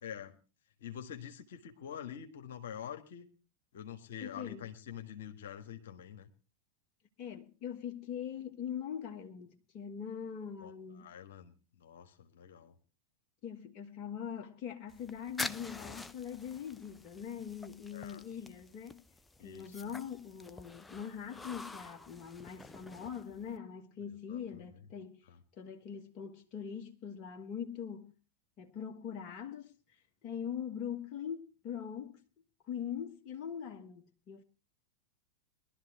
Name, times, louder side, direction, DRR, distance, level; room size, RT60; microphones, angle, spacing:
voice 1, 0.0-0.3 0.8-3.3 3.7-6.3 10.6-10.7 11.0-12.7 17.9-18.2 19.4-19.9 24.3-24.8 25.3-25.4, left 9 dB, 60° left, 1.5 m, -46 dB
voice 2, 4.2-4.7 7.2-11.1 13.4-19.0 19.4-25.2 25.6-28.1 28.6-29.8 30.2-32.2 32.7-34.4, left 8 dB, 40° left, 1.4 m, -42 dB
sound 1, 14.9-23.6, left 3 dB, 10° left, 0.6 m, -47 dB
22.0 x 12.0 x 2.9 m
figure-of-eight pair, 90°, 0 cm